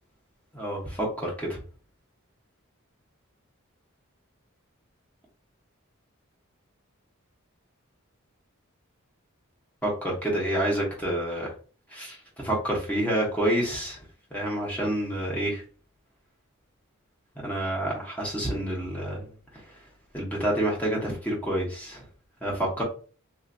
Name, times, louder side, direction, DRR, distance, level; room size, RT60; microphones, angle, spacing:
voice 1, 0.5-1.6 9.8-11.5 11.9-14.0 14.3-15.6 17.4-19.3 20.1-22.0 22.4-22.8, right 1 dB, 5° left, -3 dB, 0.9 m, -28 dB
3.3 x 2.5 x 2.5 m, 0.38 s
head